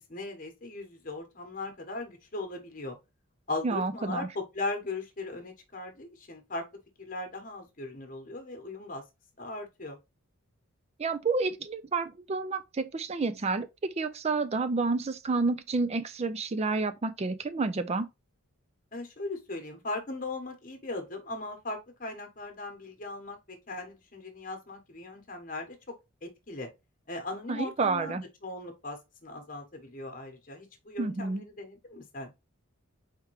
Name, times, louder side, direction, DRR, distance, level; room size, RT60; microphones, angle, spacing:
voice 1, 0.1-3.0 3.5-6.7 7.0-9.0 9.4-10.0 18.9-25.9 26.2-26.7 27.1-32.3, left 2 dB, 40° left, 1.1 m, -38 dB
voice 2, 3.6-4.3 11.0-18.1 27.5-28.2 31.0-31.4, right 3 dB, 30° right, 0.4 m, -30 dB
4.4 x 3.6 x 3.0 m
head